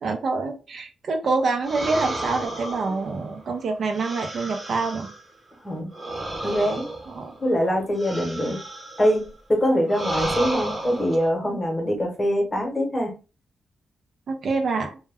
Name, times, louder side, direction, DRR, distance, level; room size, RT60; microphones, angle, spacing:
voice 1, 0.0-5.1 7.1-7.3 9.7-9.8 14.3-15.0, right 3 dB, 60° right, 4 dB, 0.5 m, -26 dB
sound 1, 1.6-5.3 5.9-9.3 9.9-11.3, right 1 dB, 20° right, 0.8 m, -32 dB
voice 2, 6.4-6.9 7.4-8.6 9.0-13.1, equal, 25° left, 1 dB, 1.0 m, -24 dB
2.2 x 2.1 x 3.4 m, 0.32 s
cardioid pair, 110°, 0 cm